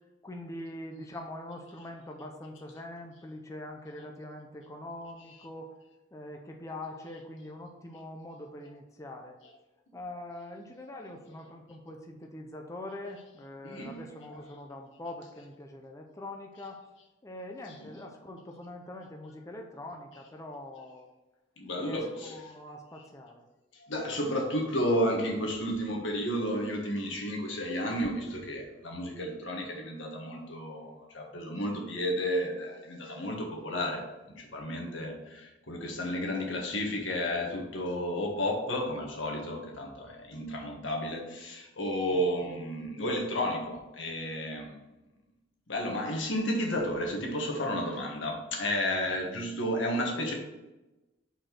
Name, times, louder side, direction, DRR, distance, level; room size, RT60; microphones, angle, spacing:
voice 1, 0.2-5.7 6.1-9.4 9.9-16.8 17.2-21.1 21.8-23.4 42.1-42.2, left 1 dB, 15° left, 2 dB, 0.6 m, -43 dB
voice 2, 13.6-14.0 17.7-17.9 21.6-22.4 23.9-44.8 45.7-50.3, equal, 90° left, 0 dB, 1.5 m, -32 dB
5.1 x 4.4 x 5.9 m, 1.0 s
head